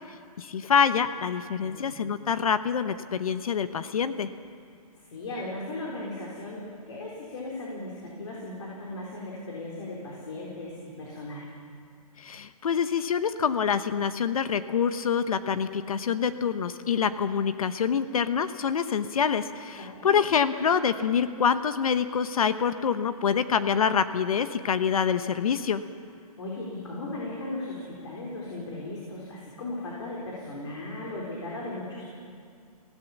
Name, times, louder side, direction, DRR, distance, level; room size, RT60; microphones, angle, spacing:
voice 1, 0.4-4.3 12.2-25.8, left 7 dB, 65° left, 11 dB, 1.0 m, -26 dB
voice 2, 1.6-2.0 5.1-11.5 19.8-20.2 26.4-32.1, left 2 dB, 50° left, -3 dB, 4.0 m, -37 dB
24.0 x 17.0 x 7.2 m, 2.2 s
hypercardioid pair, 175°, 19 cm